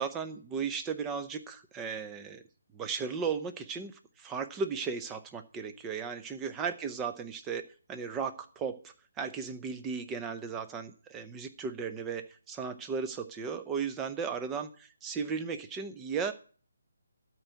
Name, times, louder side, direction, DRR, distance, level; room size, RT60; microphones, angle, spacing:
voice 1, 0.0-2.4 2.7-16.3, right 6 dB, 15° right, 8 dB, 0.8 m, -36 dB
13.0 x 4.6 x 8.2 m, 0.42 s
figure-of-eight pair, 150°, 0 cm